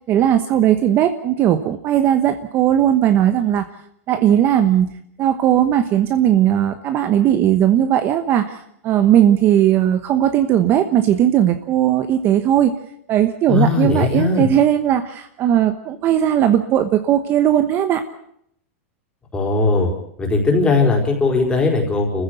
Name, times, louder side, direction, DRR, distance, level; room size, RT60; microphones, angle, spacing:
voice 1, 0.1-3.7 4.1-4.9 5.2-12.7 13.1-18.0, right 10 dB, 30° right, 9 dB, 1.1 m, -17 dB
voice 2, 13.5-14.5 19.3-19.9 20.2-22.2, left 3 dB, 15° left, 1 dB, 4.7 m, -18 dB
27.0 x 15.0 x 8.3 m, 0.73 s
supercardioid pair, 155°, 8 cm